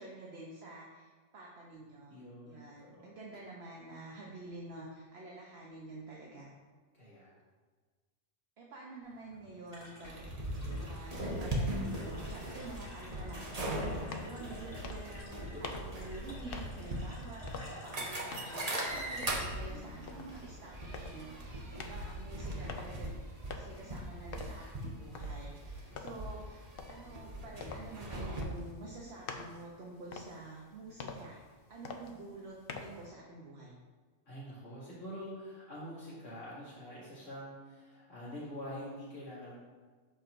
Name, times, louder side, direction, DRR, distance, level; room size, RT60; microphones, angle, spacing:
voice 1, 0.0-2.1 2.5-6.5 8.6-10.3 10.8-23.1 23.5-31.4 31.7-33.8, right 2 dB, 60° right, -3 dB, 1.1 m, -48 dB
voice 2, 2.1-3.0 6.9-7.3 15.5-15.8 19.7-20.2 25.9-26.3 34.3-39.5, equal, 90° left, -11 dB, 2.9 m, -46 dB
sound 1, 9.0-20.7, equal, 30° left, 1.9 m, -52 dB
sound 2, 10.0-28.4, right 1 dB, 35° right, 1.1 m, -40 dB
sound 3, 13.9-33.1, left 4 dB, 55° left, 0.7 m, -49 dB
12.5 x 4.5 x 2.6 m, 1.4 s
omnidirectional pair, 1.3 m